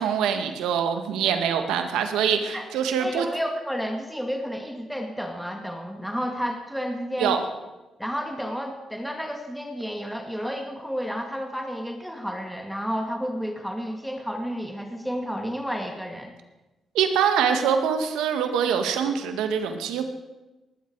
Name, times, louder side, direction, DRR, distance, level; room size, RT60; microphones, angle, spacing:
voice 1, 0.0-3.3 7.2-7.4 16.9-20.0, right 7 dB, 90° right, 6 dB, 1.8 m, -24 dB
voice 2, 3.0-7.4 8.0-16.3, equal, ahead, 3 dB, 2.4 m, -31 dB
19.5 x 14.5 x 4.8 m, 1.1 s
supercardioid pair, 60°, 0 cm